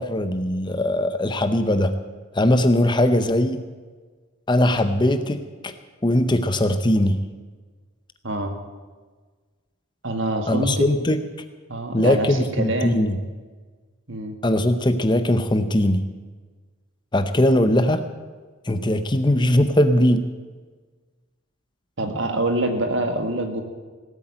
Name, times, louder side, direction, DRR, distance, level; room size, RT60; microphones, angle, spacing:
voice 1, 0.0-1.9 2.3-3.6 4.5-5.7 6.0-7.2 10.5-11.2 11.9-13.2 14.4-16.0 17.1-18.0 18.7-20.3, left 1 dB, 20° left, 10 dB, 0.7 m, -20 dB
voice 2, 10.0-10.9 11.7-13.0 14.1-14.4 22.0-23.6, right 1 dB, 60° right, 5 dB, 1.9 m, -25 dB
17.5 x 8.5 x 8.8 m, 1.4 s
head